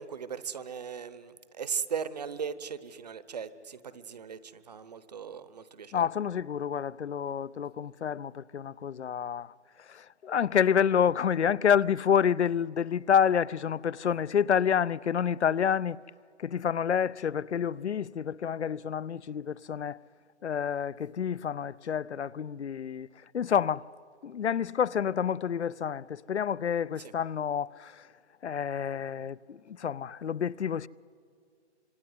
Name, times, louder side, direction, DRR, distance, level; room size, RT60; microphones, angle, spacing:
voice 1, 0.0-6.1 27.0-27.1, right 7 dB, 35° right, 0.9 m, -38 dB
voice 2, 5.9-9.5 9.8-16.0 16.4-20.0 20.4-23.1 23.3-23.8 24.2-28.1 28.4-30.9, left 8 dB, 70° left, 0.7 m, -28 dB
26.0 x 23.5 x 9.6 m
hypercardioid pair, 160°, 35 cm